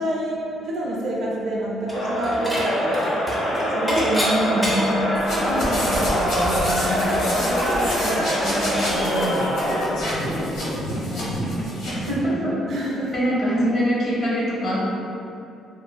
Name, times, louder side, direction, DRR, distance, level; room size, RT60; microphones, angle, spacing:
voice 1, 0.0-5.0 5.4-7.0 7.3-8.3 8.9-10.9 12.3-13.1, right 1 dB, 55° right, -5 dB, 0.4 m, -28 dB
Crowd, 1.9-10.0, equal, 70° left, 1.2 m, -24 dB
Dishes pots and pans / Chink clink, 1.9-2.7 2.9-5.1 5.5-5.6 5.8-9.0, equal, 10° left, 0.4 m, -30 dB
voice 2, 4.5-5.2 6.8-7.2 8.4-8.9 11.1-11.4 11.9-12.6 13.1-14.9, equal, 35° left, -6 dB, 0.7 m, -25 dB
sound 1, 5.1-12.2, equal, 90° left, 0.8 m, -27 dB
2.5 x 2.5 x 2.2 m, 2.6 s
cardioid pair, 150°, 0 cm